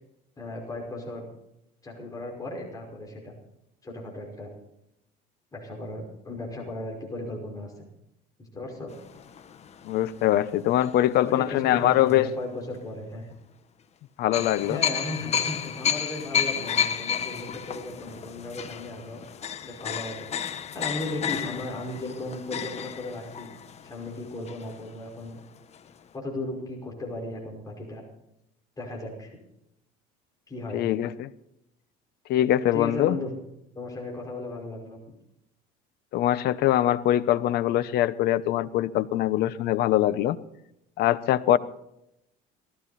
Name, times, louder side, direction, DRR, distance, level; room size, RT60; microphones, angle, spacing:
voice 1, 0.4-1.3 1.8-3.3 3.8-4.5 5.5-7.9 8.4-8.9 10.9-13.3 14.6-19.2 19.6-23.5 23.8-25.4 26.1-28.0 28.8-29.4 30.5-30.8 32.7-33.3 33.7-35.0, left 2 dB, 20° left, -1 dB, 5.5 m, -36 dB
sound 1, 8.9-11.4 11.9-12.1 14.3-25.1 25.4-25.5 25.7-25.9, left 8 dB, 35° left, 1.3 m, -32 dB
voice 2, 9.8-12.3 14.2-14.8 30.7-31.3 32.3-33.2 36.1-40.4 41.0-41.6, left 13 dB, 65° left, 16 dB, 1.0 m, -23 dB
18.5 x 15.5 x 4.3 m, 0.82 s
cardioid pair, 120°, 18 cm